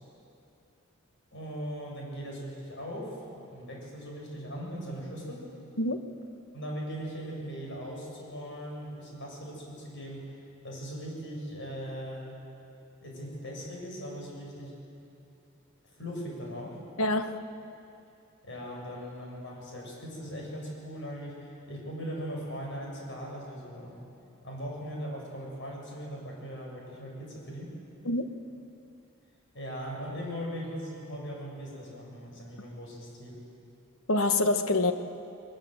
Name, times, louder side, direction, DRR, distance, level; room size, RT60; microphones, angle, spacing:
voice 1, 1.3-5.5 6.5-10.4 10.6-12.3 13.0-14.7 16.0-16.8 18.4-24.0 24.4-27.8 29.5-33.4, equal, 65° left, -2 dB, 7.1 m, -39 dB
voice 2, 17.0-17.5 28.0-28.3 34.1-34.9, left 2 dB, 85° left, 8 dB, 1.2 m, -26 dB
22.0 x 20.5 x 7.9 m, 2.7 s
head